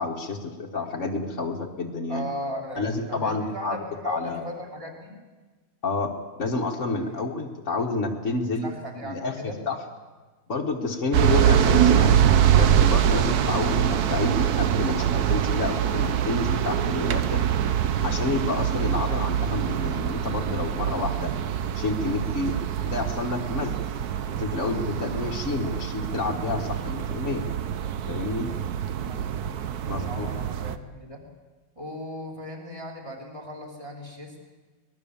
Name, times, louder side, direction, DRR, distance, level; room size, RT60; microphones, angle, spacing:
voice 1, 0.0-2.3 2.8-3.8 4.0-4.5 5.8-6.1 6.4-8.7 9.0-9.8 10.5-12.2 12.5-17.5 18.0-21.3 21.7-22.6 22.8-23.8 24.3-27.4 28.1-28.5 29.9-30.3, left 3 dB, 40° left, -1 dB, 1.7 m, -29 dB
voice 2, 2.1-5.2 7.0-7.3 8.6-9.6 25.6-25.7 29.0-31.2 31.8-34.4, equal, 15° right, 0 dB, 3.6 m, -37 dB
sound 1, 11.1-30.8, right 9 dB, 60° right, 1.3 m, -24 dB
24.0 x 20.5 x 7.1 m, 1.3 s
omnidirectional pair, 2.0 m